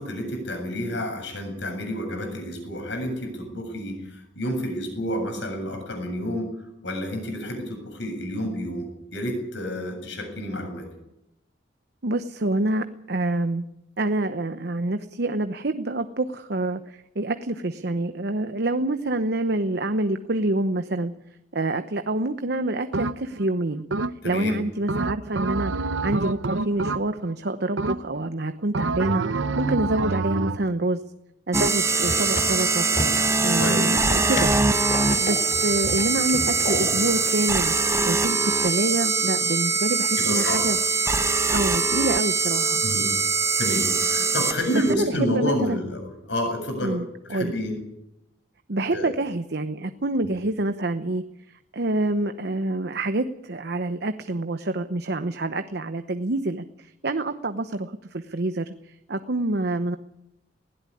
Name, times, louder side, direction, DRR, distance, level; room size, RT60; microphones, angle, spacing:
voice 1, 0.0-6.5 6.8-10.9 24.2-24.6 29.9-30.1 33.6-33.8 40.2-40.6 42.8-43.1 43.6-47.0 47.2-47.8 48.9-49.1, equal, 75° left, 5 dB, 7.7 m, -29 dB
voice 2, 12.0-13.7 14.0-21.1 21.5-23.8 24.2-31.0 31.5-32.9 33.4-34.6 35.2-37.7 38.1-40.8 41.5-42.8 44.7-45.8 46.8-47.5 48.7-51.2 51.7-58.7 59.1-60.0, right 2 dB, 60° right, 9 dB, 0.9 m, -27 dB
sound 1, 22.9-23.5 23.9-24.4 24.9-27.4 27.8-28.3 28.7-30.7, right 3 dB, 85° right, 0.8 m, -27 dB
sound 2, 31.5-44.9, right 4 dB, 15° right, 0.8 m, -23 dB
sound 3, 31.9-38.2, left 1 dB, 45° left, 3.8 m, -34 dB
19.5 x 17.0 x 9.9 m, 0.86 s
head